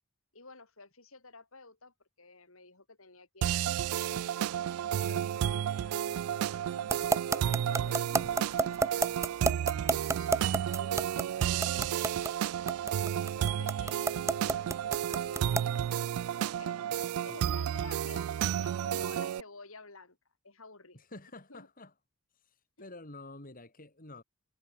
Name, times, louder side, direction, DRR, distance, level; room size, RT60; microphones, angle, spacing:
voice 1, 0.3-4.5 5.0-9.4 9.6-11.1 11.7-12.3 13.0-18.3 18.6-20.2 20.4-21.0 21.5-21.7, left 3 dB, 75° left, 6.1 m, -52 dB
sound 1, 3.4-19.4, right 10 dB, 90° right, 0.3 m, -32 dB
sound 2, 6.9-15.8, right 3 dB, 15° right, 0.3 m, -29 dB
voice 2, 11.6-12.0 20.9-21.9 22.4-24.2, left 2 dB, 40° left, 4.3 m, -49 dB
head